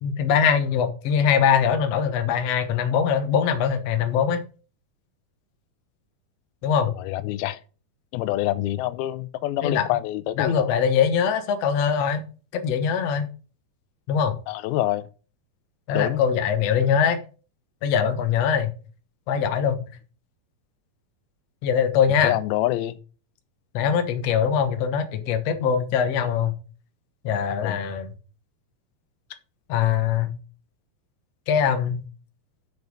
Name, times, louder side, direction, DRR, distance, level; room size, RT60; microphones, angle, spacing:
voice 1, 0.0-4.4 6.6-7.0 9.6-9.9 10.4-12.2 12.5-13.3 14.1-14.3 15.9-17.2 17.8-18.7 19.3-19.8 21.6-22.3 23.7-26.5 27.2-28.1 29.7-30.3 31.5-32.0, left 7 dB, 60° left, 1.9 m, -22 dB
voice 2, 6.9-7.6 8.1-10.7 14.5-15.0 15.9-16.2 22.2-23.0 27.6-27.8, left 15 dB, 90° left, 2.5 m, -26 dB
7.1 x 6.5 x 6.3 m
omnidirectional pair, 4.3 m